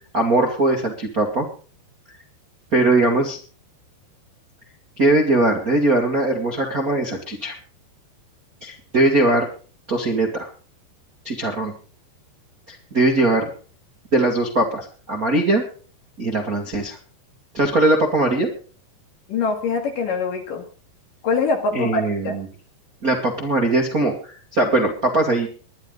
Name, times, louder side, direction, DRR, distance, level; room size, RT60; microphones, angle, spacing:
voice 1, 0.1-1.5 2.7-3.4 5.0-7.5 8.6-9.5 9.9-10.5 11.2-11.7 12.7-13.5 14.1-15.6 16.2-17.0 17.5-18.5 21.7-22.4 23.0-25.5, right 2 dB, 45° right, 0 dB, 1.1 m, -20 dB
voice 2, 19.3-20.6 21.2-22.4, left 4 dB, 55° left, 4 dB, 3.4 m, -23 dB
22.0 x 10.5 x 3.9 m, 0.39 s
omnidirectional pair, 5.1 m